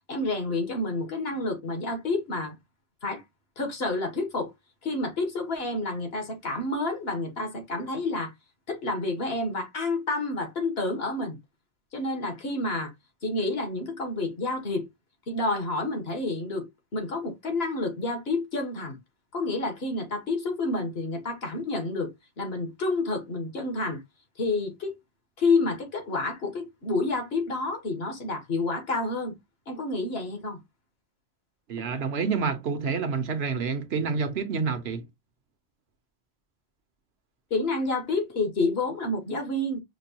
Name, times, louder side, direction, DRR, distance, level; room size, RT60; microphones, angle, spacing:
voice 1, 0.1-2.6 3.0-3.2 3.6-4.5 4.8-8.3 8.7-11.4 11.9-12.9 13.2-14.9 15.3-16.7 16.9-19.0 19.3-24.0 24.4-25.0 25.4-29.3 29.7-30.6 37.5-39.8, left 2 dB, 65° left, 1.6 m, -29 dB
voice 2, 31.7-35.1, right 5 dB, 70° right, 1.1 m, -28 dB
5.9 x 2.3 x 2.8 m
omnidirectional pair, 1.1 m